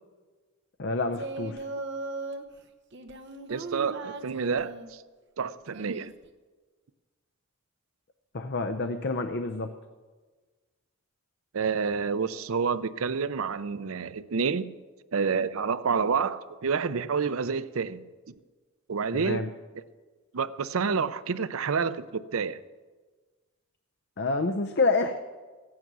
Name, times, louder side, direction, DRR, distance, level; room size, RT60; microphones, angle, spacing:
voice 1, 0.8-1.6 8.3-9.7 19.1-19.5 24.2-25.2, left 3 dB, 55° left, 0.6 m, -28 dB
Singing, 1.1-2.4 2.9-4.9 5.7-6.3, right 3 dB, 55° right, 1.0 m, -38 dB
voice 2, 3.5-5.0 5.4-6.1 11.5-14.7 15.1-18.0 18.9-19.5 20.3-22.6, right 5 dB, 85° right, 0.6 m, -28 dB
15.0 x 9.5 x 6.2 m
head